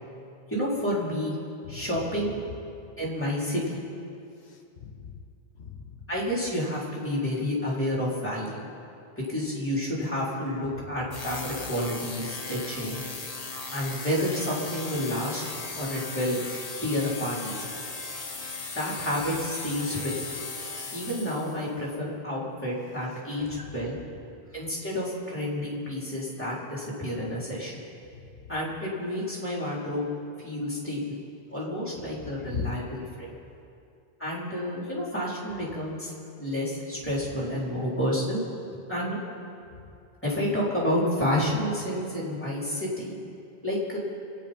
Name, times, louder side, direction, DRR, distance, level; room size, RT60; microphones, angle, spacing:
voice 1, 0.5-1.4 1.7-2.3 3.0-3.8 6.1-8.6 9.2-13.0 13.7-16.4 16.8-17.7 18.7-20.4 20.9-24.0 24.5-27.8 28.5-30.1 30.4-31.2 31.5-33.3 34.2-36.1 36.4-38.4 38.9-39.2 40.2-43.2 43.6-44.0, left 1 dB, 10° left, -6 dB, 4.3 m, -30 dB
voice 2, 4.4-5.2 5.6-6.0 32.3-32.8 39.7-39.8, left 5 dB, 75° left, 4 dB, 1.2 m, -37 dB
sound 1, 11.1-21.7, left 3 dB, 35° left, 1.2 m, -37 dB
27.0 x 9.2 x 5.4 m, 2.5 s
omnidirectional pair, 1.1 m